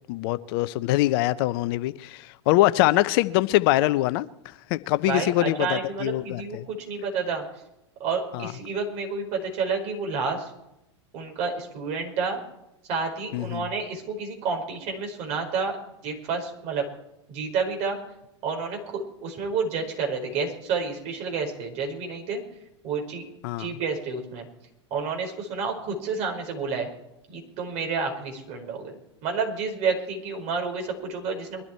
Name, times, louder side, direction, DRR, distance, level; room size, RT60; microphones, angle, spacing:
voice 1, 0.1-6.7 8.3-8.5 13.3-13.7 23.4-23.7, left 17 dB, 55° left, 14 dB, 0.7 m, -24 dB
voice 2, 5.0-7.4 8.0-10.5 11.1-12.4 12.9-15.8 16.0-16.8 17.3-18.0 18.4-22.4 22.8-23.3 23.6-24.5 24.9-26.9 27.3-28.9 29.2-31.6, right 4 dB, 45° right, 3 dB, 5.0 m, -29 dB
22.5 x 12.0 x 4.5 m, 0.85 s
hypercardioid pair, 100°, 15 cm